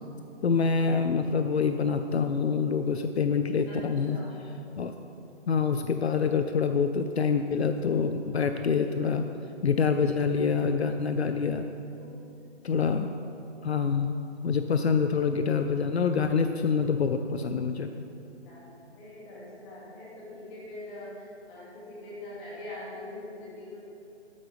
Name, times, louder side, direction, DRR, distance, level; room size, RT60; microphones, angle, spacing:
voice 1, 0.4-4.2 4.8-4.9 5.5-9.3 9.6-11.7 12.6-13.1 13.6-14.1 14.4-17.9, left 5 dB, 65° left, 8 dB, 0.6 m, -26 dB
voice 2, 3.7-4.4 11.9-12.1 12.7-12.9 18.5-23.8, left 1 dB, 15° left, -7 dB, 2.3 m, -43 dB
13.0 x 9.6 x 3.4 m, 2.7 s
figure-of-eight pair, 155°, 34 cm